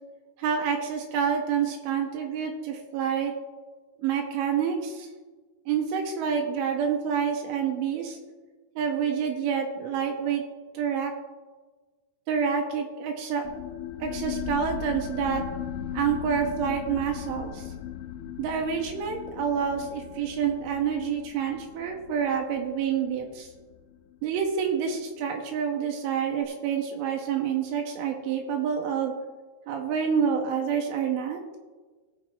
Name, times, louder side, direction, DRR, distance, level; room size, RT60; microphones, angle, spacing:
voice 1, 0.4-3.3 4.0-5.1 5.7-8.2 8.8-10.4 10.7-11.1 12.3-13.5 14.0-15.5 15.9-17.7 18.4-23.5 24.2-29.1 29.7-31.4, right 7 dB, 80° right, 2 dB, 3.4 m, -28 dB
sound 1, 13.5-24.6, left 8 dB, 80° left, 3.3 m, -38 dB
17.5 x 7.0 x 3.6 m, 1.3 s
omnidirectional pair, 5.7 m